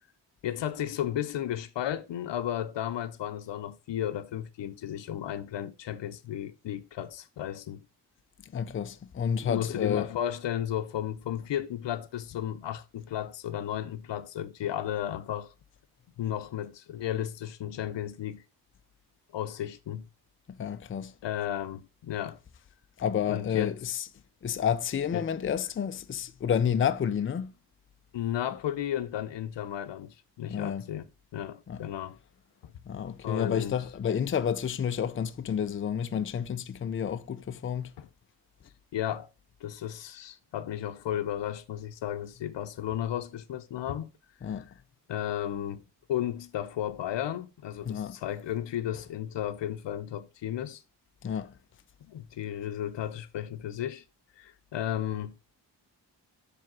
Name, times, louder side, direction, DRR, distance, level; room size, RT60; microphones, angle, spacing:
voice 1, 0.4-7.8 9.4-15.5 16.2-18.4 19.3-20.1 21.2-22.4 23.3-23.7 25.1-25.3 28.1-31.1 31.3-32.2 32.6-32.7 33.2-33.8 38.0-38.1 38.9-39.3 39.6-44.1 45.1-45.8 46.1-50.8 52.0-54.0 54.4-55.4, left 11 dB, 90° left, 0.8 m, -34 dB
voice 2, 8.5-10.1 20.6-21.1 23.0-24.1 24.4-27.5 30.5-30.8 31.7-31.8 32.9-37.9 44.4-44.7 47.9-48.2 51.2-51.5, left 8 dB, 30° left, 0.5 m, -30 dB
7.5 x 3.5 x 6.0 m
wide cardioid pair, 130°, 42 cm